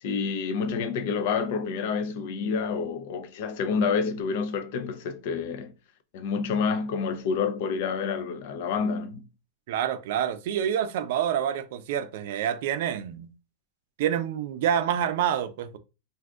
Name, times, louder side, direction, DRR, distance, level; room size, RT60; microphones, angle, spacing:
voice 1, 0.0-5.7 6.1-9.2, left 5 dB, 55° left, 0.5 m, -28 dB
voice 2, 9.7-13.3 14.0-15.8, right 9 dB, 60° right, 0.4 m, -27 dB
2.6 x 2.4 x 3.5 m
supercardioid pair, 160°, 0 cm